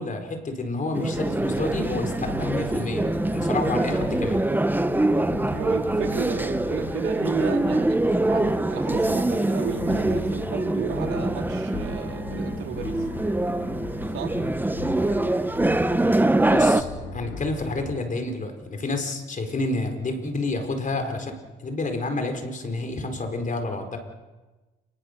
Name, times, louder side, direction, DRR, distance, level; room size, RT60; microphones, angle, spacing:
voice 1, 0.0-3.1 3.3-4.4 16.5-16.9 17.1-21.3 21.6-24.0, left 2 dB, 40° left, 6 dB, 4.7 m, -29 dB
sound 1, 0.9-16.8, right 2 dB, 10° right, 1.1 m, -24 dB
sound 2, 1.1-17.9, left 3 dB, 90° left, 7.2 m, -38 dB
voice 2, 5.3-13.1 14.1-14.4, right 8 dB, 85° right, 2 dB, 3.6 m, -34 dB
29.0 x 20.0 x 6.8 m, 1.2 s
cardioid pair, 90°, 20 cm